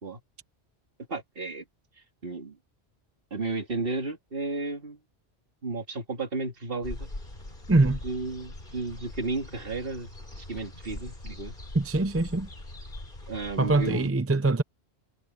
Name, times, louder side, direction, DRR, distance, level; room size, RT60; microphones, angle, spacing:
voice 1, 1.1-1.6 2.2-2.6 3.3-5.0 5.6-7.1 7.9-10.1 10.4-11.5 13.3-14.1, right 3 dB, 60° right, 2.8 m, -33 dB
sound 1, 6.8-14.1, left 1 dB, 50° left, 4.0 m, -42 dB
voice 2, 7.7-8.0 11.7-12.5 13.6-14.6, right 2 dB, 20° right, 0.5 m, -23 dB
omnidirectional pair, 1.1 m